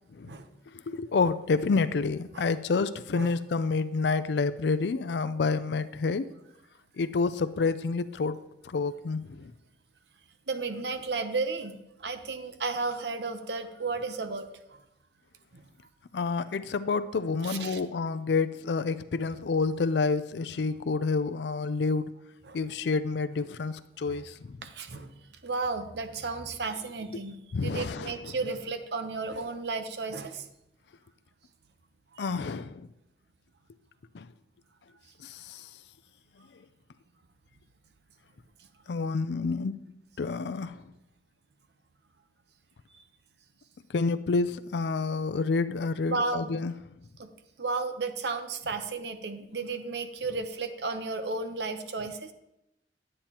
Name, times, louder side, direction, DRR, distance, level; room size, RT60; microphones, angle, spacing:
voice 1, 0.9-6.2 7.0-8.4 8.7-9.5 16.1-22.1 22.5-24.6 27.5-28.2 32.2-32.9 34.1-34.3 35.2-35.4 38.9-39.7 40.2-40.8 43.9-46.7, left 4 dB, 75° left, 13 dB, 0.4 m, -28 dB
voice 2, 10.5-14.5 15.5-15.6 17.4-17.8 22.4-22.6 24.1-24.2 24.6-25.1 25.4-30.4 32.2-32.3 46.1-46.5 47.2-47.3 47.6-52.3, right 3 dB, 75° right, 8 dB, 0.8 m, -33 dB
9.9 x 8.8 x 2.9 m, 0.85 s
head